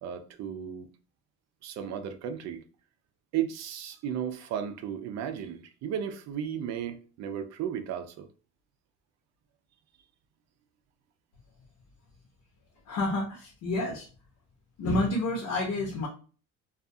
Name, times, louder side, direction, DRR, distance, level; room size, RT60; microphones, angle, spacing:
voice 1, 0.0-0.9 1.6-2.6 3.3-8.3, right 9 dB, 60° right, 0.5 m, -34 dB
voice 2, 12.9-14.1 14.8-16.1, left 2 dB, 70° left, 0.8 m, -29 dB
2.4 x 2.3 x 2.6 m
cardioid pair, 130°, 30 cm